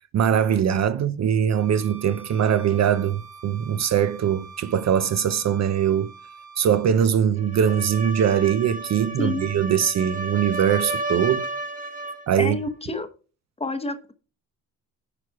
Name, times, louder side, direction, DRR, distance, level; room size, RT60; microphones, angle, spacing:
voice 1, 0.1-6.1 6.6-11.5 12.3-12.6, right 8 dB, 45° right, 0.6 m, -22 dB
Bowed string instrument, 1.5-6.9, right 4 dB, 65° right, 4.0 m, -45 dB
sound 1, 7.4-12.3, right 2 dB, 20° right, 1.4 m, -32 dB
voice 2, 9.2-9.5 12.4-13.1 13.6-14.1, left 2 dB, 15° left, 0.9 m, -28 dB
9.7 x 4.7 x 4.6 m
cardioid pair, 130°, 36 cm